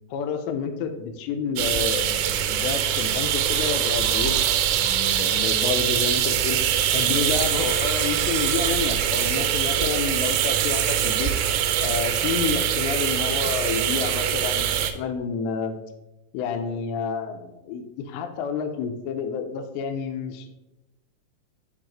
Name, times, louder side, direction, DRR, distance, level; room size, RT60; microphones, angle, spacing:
voice 1, 0.1-4.4 4.7-6.6 6.9-11.3 11.8-15.8 16.3-20.5, left 6 dB, 90° left, 6 dB, 2.8 m, -29 dB
sound 1, 1.6-14.9, right 10 dB, 90° right, 2.8 m, -23 dB
11.0 x 3.9 x 3.1 m, 0.99 s
omnidirectional pair, 5.0 m